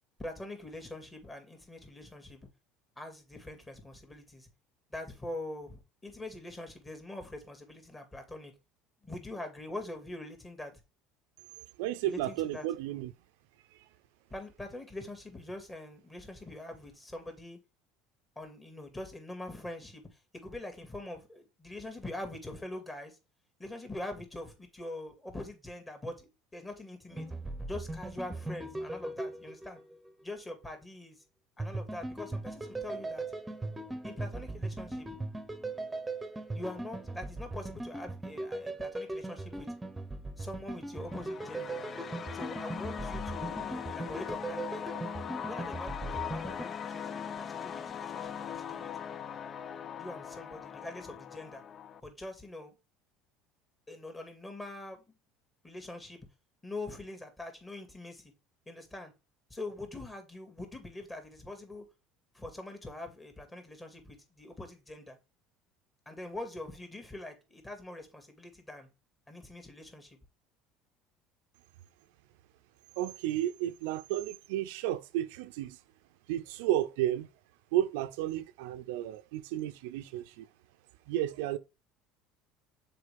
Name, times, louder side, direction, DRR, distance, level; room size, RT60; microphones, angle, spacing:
voice 1, 0.2-2.4 3.0-4.5 4.9-8.5 9.0-10.8 12.0-12.7 14.3-17.6 18.4-23.2 23.6-27.3 27.7-29.8 30.2-31.2 31.6-33.3 34.0-35.1 36.5-39.7 40.4-41.8 42.3-44.8 45.5-48.9 50.0-51.6 52.0-52.8 53.9-55.0 55.6-56.2 56.6-58.3 58.7-59.1 59.5-61.8 62.3-65.2 66.1-68.9 69.3-70.2, left 1 dB, 15° left, 2.3 m, -43 dB
voice 2, 11.8-13.1 73.0-75.8 76.3-77.3 77.7-80.5 81.1-81.6, right 13 dB, 80° right, 0.5 m, -32 dB
sound 1, 27.1-30.1 31.6-46.7, right 2 dB, 10° right, 1.0 m, -39 dB
sound 2, 41.0-52.0, left 8 dB, 40° left, 0.4 m, -40 dB
6.7 x 4.3 x 3.5 m
supercardioid pair, 100°, 0 cm